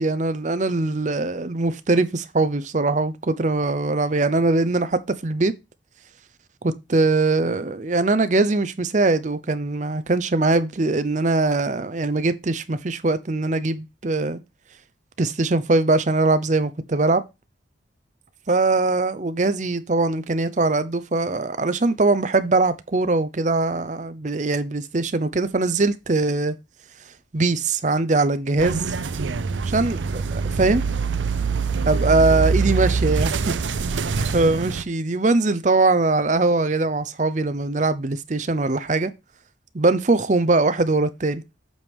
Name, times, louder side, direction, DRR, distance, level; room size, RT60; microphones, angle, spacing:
voice 1, 0.0-5.5 6.6-14.4 15.2-17.2 18.5-26.6 27.3-28.9 29.6-30.8 31.8-33.6 34.1-39.1 39.7-41.4, right 3 dB, 40° right, 0.6 m, -21 dB
sound 1, 28.6-34.8, right 4 dB, 80° right, 0.5 m, -24 dB
8.0 x 4.8 x 3.5 m
head